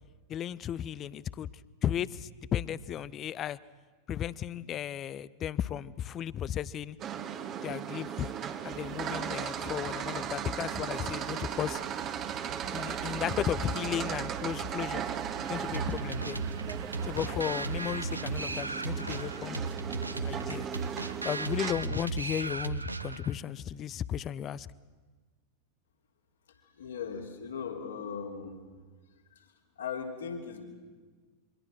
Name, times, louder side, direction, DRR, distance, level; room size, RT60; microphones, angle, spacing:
voice 1, 0.3-1.5 1.8-3.6 4.1-7.0 7.6-8.3 8.6-11.8 12.7-15.0 15.4-16.4 17.0-19.7 20.2-20.7 21.2-24.7, left 10 dB, 30° left, 20 dB, 0.6 m, -34 dB
sound 1, 7.0-21.7, right 8 dB, 30° right, 1.6 m, -37 dB
sound 2, 8.7-18.4, right 12 dB, 55° right, 0.8 m, -45 dB
sound 3, 15.7-23.4, right 3 dB, 80° right, 0.8 m, -36 dB
voice 2, 26.6-28.6 29.3-30.6, left 6 dB, 65° left, 2 dB, 3.4 m, -39 dB
27.0 x 24.0 x 6.4 m, 1.4 s
figure-of-eight pair, 90°, 0 cm